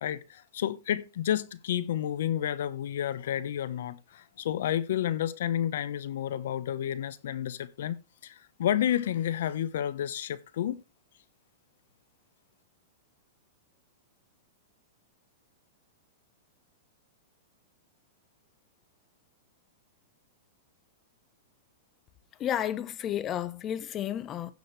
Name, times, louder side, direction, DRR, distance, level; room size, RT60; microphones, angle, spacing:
voice 1, 0.0-10.8, left 10 dB, 75° left, 1.1 m, -31 dB
voice 2, 22.4-24.5, left 10 dB, 25° left, 1.1 m, -32 dB
16.0 x 6.5 x 3.4 m
hypercardioid pair, 135°, 0 cm